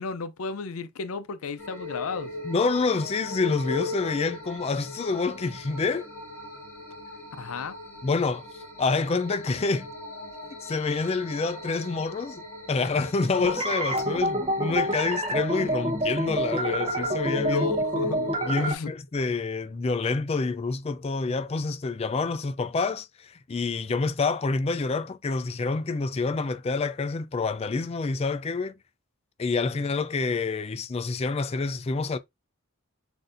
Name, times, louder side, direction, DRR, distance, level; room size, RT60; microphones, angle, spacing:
voice 1, 0.0-2.3 7.4-7.8 17.5-18.3 18.6-18.9, left 5 dB, 85° left, 0.5 m, -34 dB
sound 1, 1.6-18.7, left 2 dB, 10° left, 1.6 m, -38 dB
voice 2, 2.4-6.1 8.0-8.5 8.8-9.9 10.6-12.4 12.7-17.7 18.4-28.8 29.4-32.2, left 4 dB, 30° left, 0.3 m, -27 dB
sound 2, 13.4-18.7, right 1 dB, 25° right, 0.9 m, -28 dB
6.4 x 2.7 x 2.5 m
head